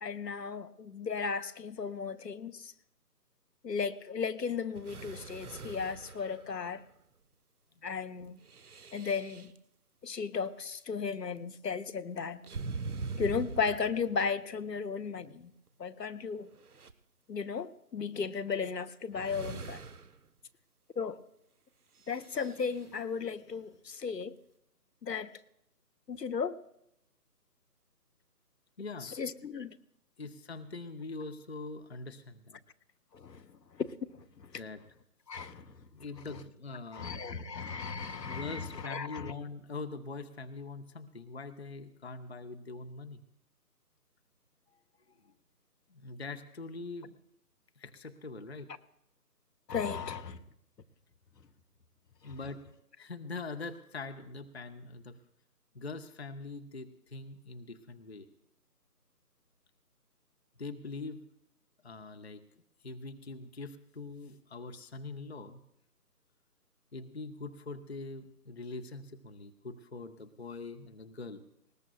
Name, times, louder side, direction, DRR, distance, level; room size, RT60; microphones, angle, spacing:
voice 1, 0.0-2.7 3.6-6.8 7.8-8.4 8.9-9.5 10.0-12.4 13.2-15.5 15.8-16.5 17.3-19.8 21.0-21.2 22.1-24.3 25.0-25.3 26.1-26.6 29.0-29.8 33.1-33.4 33.7-34.5 35.3-35.8 36.9-39.3 49.7-50.4 52.2-52.3, left 5 dB, 80° left, 0.8 m, -35 dB
sound 1, 4.7-7.0 8.4-9.6 12.4-14.4 15.7-15.8 16.3-16.9 18.5-18.7 19.1-20.3 22.0-22.9, right 4 dB, 65° right, 0.9 m, -43 dB
voice 2, 28.8-29.1 30.2-32.6 34.5-34.8 35.9-37.1 37.4-37.5 38.3-43.2 45.2-45.3 45.9-47.2 47.8-48.8 52.2-52.6 53.0-55.2 55.7-58.3 60.6-61.2 61.8-62.4 62.8-65.6 66.9-71.4, left 3 dB, 40° left, 0.6 m, -43 dB
20.0 x 19.0 x 2.2 m
figure-of-eight pair, 155°, 49 cm